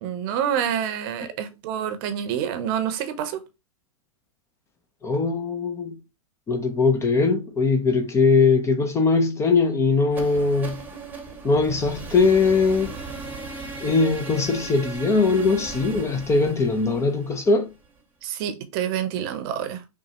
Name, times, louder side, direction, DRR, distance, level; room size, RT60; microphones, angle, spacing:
voice 1, 0.0-3.4 18.2-19.8, right 9 dB, 40° right, 0.8 m, -27 dB
voice 2, 5.0-6.0 6.5-10.8 11.4-12.9 13.8-17.7, left 4 dB, 15° left, 0.6 m, -21 dB
sound 1, 10.1-18.0, right 4 dB, 10° right, 1.0 m, -37 dB
5.8 x 2.2 x 3.1 m
figure-of-eight pair, 100°, 18 cm